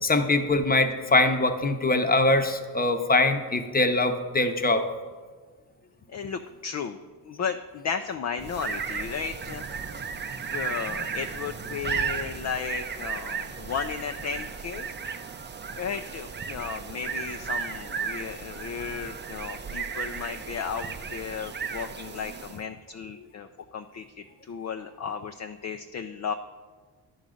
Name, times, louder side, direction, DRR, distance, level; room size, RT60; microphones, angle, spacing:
voice 1, 0.0-4.8, left 2 dB, 20° left, 7 dB, 0.9 m, -23 dB
voice 2, 6.1-7.0 7.2-9.6 9.9-10.0 10.5-14.9 15.8-23.5 23.7-26.3, left 6 dB, 40° left, 7 dB, 0.4 m, -34 dB
sound 1, 8.4-22.7, right 6 dB, 25° right, 0.5 m, -35 dB
10.5 x 3.9 x 6.3 m, 1.5 s
supercardioid pair, 60°, 47 cm